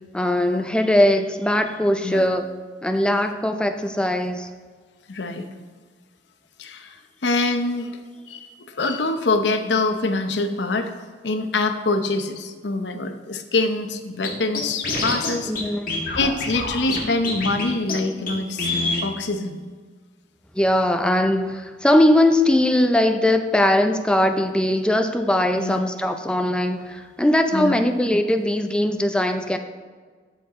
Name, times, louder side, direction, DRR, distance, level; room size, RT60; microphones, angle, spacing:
voice 1, 0.1-2.4 2.8-4.5 15.5-16.3 20.5-29.6, left 1 dB, 5° left, 7 dB, 0.5 m, -20 dB
voice 2, 5.1-5.5 6.6-8.0 8.3-10.9 11.2-15.5 16.1-19.6 25.5-25.9 27.5-27.7, left 3 dB, 85° left, 7 dB, 0.8 m, -25 dB
Scratching (performance technique), 14.2-14.3 14.5-15.3 15.5-15.6 15.9-17.0 17.2-17.6 17.9-18.0 18.3-18.4 18.6-19.0, left 3 dB, 55° left, 1.8 m, -25 dB
13.5 x 4.6 x 3.7 m, 1.5 s
head